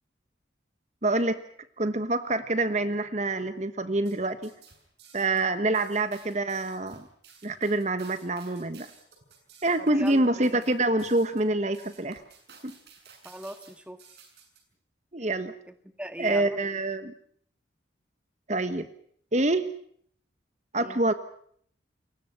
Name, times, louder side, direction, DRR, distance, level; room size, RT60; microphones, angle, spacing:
voice 1, 1.0-1.4 1.8-4.5 5.1-7.1 7.4-8.9 9.6-12.2 12.6-12.7 15.1-15.5 16.2-17.1 18.5-18.9 19.3-19.7 20.7-21.1, right 2 dB, 40° right, 11 dB, 1.3 m, -26 dB
sound 1, 4.0-14.6, right 5 dB, 65° right, 7.1 m, -54 dB
voice 2, 9.8-10.6 13.2-14.0 15.2-15.4 15.7-16.6 20.8-21.0, equal, 5° right, 9 dB, 1.8 m, -41 dB
29.5 x 23.0 x 5.9 m, 0.63 s
head